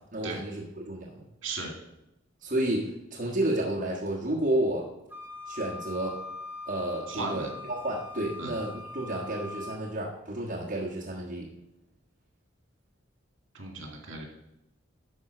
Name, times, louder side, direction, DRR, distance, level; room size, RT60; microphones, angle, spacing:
voice 1, 0.1-1.1 2.4-4.8 5.5-6.1 6.7-7.5 7.8-11.5, right 1 dB, 40° right, -4 dB, 1.5 m, -31 dB
voice 2, 1.4-1.7 7.1-7.5 8.4-8.5 13.5-14.3, right 3 dB, 70° right, 1 dB, 2.4 m, -36 dB
Wind instrument woodwind instrument, 5.1-9.8, left 2 dB, 10° right, 0.8 m, -42 dB
11.5 x 4.4 x 6.1 m, 0.88 s
head